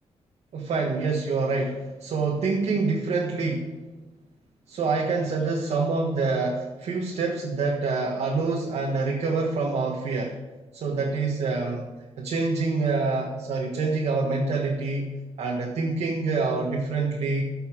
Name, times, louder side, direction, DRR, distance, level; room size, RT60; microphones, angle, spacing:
voice 1, 0.5-3.7 4.7-10.4 10.7-11.9 12.2-15.1 15.4-17.4, right 3 dB, 80° right, -1 dB, 1.5 m, -26 dB
14.5 x 5.7 x 6.2 m, 1.2 s
wide cardioid pair, 165°, 11 cm